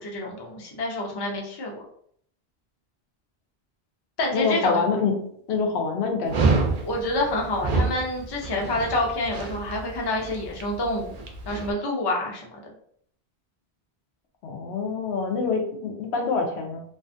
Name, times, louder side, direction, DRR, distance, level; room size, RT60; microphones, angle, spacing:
voice 1, 0.0-1.8 4.2-4.8 6.8-11.1 11.5-12.7, left 1 dB, 30° left, -1 dB, 0.4 m, -28 dB
voice 2, 4.3-5.1 5.5-6.5 14.4-16.8, left 4 dB, 85° left, 3 dB, 0.8 m, -26 dB
Dog, 6.3-11.7, right 3 dB, 55° right, 0.5 m, -28 dB
2.5 x 2.4 x 2.5 m, 0.65 s
omnidirectional pair, 1.1 m